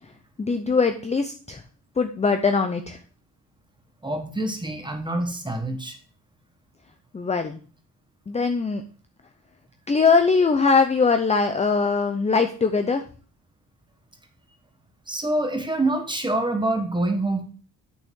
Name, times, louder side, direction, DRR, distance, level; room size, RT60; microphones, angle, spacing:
voice 1, 0.4-1.6 2.0-3.0 7.1-7.6 8.3-8.8 9.9-13.0, left 4 dB, 15° left, 7 dB, 0.5 m, -21 dB
voice 2, 4.0-6.0 15.1-17.4, right 2 dB, 10° right, 5 dB, 1.3 m, -26 dB
8.2 x 6.3 x 3.6 m, 0.40 s
cardioid pair, 130°, 40 cm